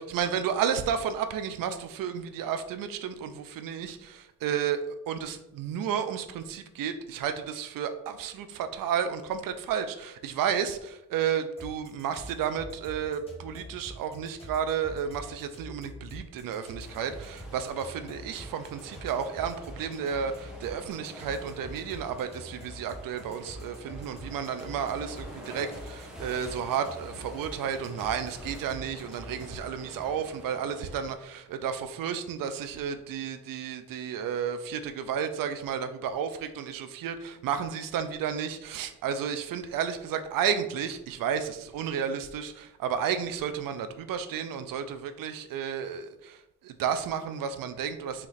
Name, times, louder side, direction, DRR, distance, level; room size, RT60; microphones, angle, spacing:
voice 1, 0.0-48.3, right 8 dB, 80° right, 10 dB, 0.5 m, -32 dB
sound 1, 11.6-29.7, equal, 15° left, 1.7 m, -45 dB
sound 2, 16.8-31.1, equal, ahead, 1.0 m, -47 dB
4.3 x 3.0 x 3.9 m, 0.87 s
cardioid pair, 115°, 33 cm